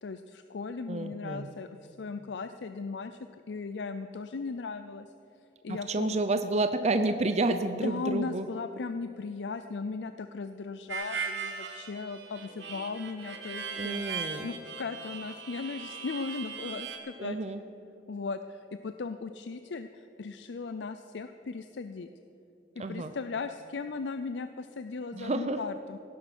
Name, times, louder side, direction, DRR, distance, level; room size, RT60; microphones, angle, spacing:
voice 1, 0.0-3.2 3.5-5.1 5.6-6.2 7.7-17.4 18.1-22.1 22.8-26.0, left 4 dB, 70° left, 9 dB, 0.5 m, -37 dB
voice 2, 0.9-1.5 5.7-8.5 13.8-14.5 17.2-17.6 22.8-23.1 25.1-25.6, right 2 dB, 40° right, 9 dB, 0.6 m, -30 dB
Harmonica, 10.9-17.0, right 5 dB, 75° right, 1.7 m, -38 dB
17.5 x 10.0 x 6.2 m, 3.0 s
head